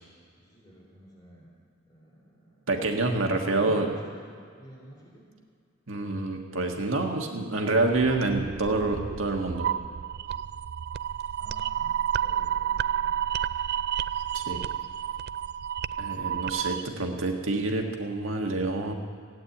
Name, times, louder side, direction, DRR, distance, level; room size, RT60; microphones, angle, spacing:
voice 1, 0.4-1.5 1.9-2.7 3.2-4.3 4.6-5.3 11.4-13.4, right 1 dB, 20° left, -4 dB, 3.6 m, -50 dB
voice 2, 2.7-3.9 5.9-9.7 14.3-14.6 16.0-18.9, right 2 dB, 75° right, 2 dB, 1.6 m, -27 dB
sound 1, 7.9-16.8, right 10 dB, 50° right, 0.3 m, -31 dB
16.0 x 8.7 x 9.2 m, 2.1 s
head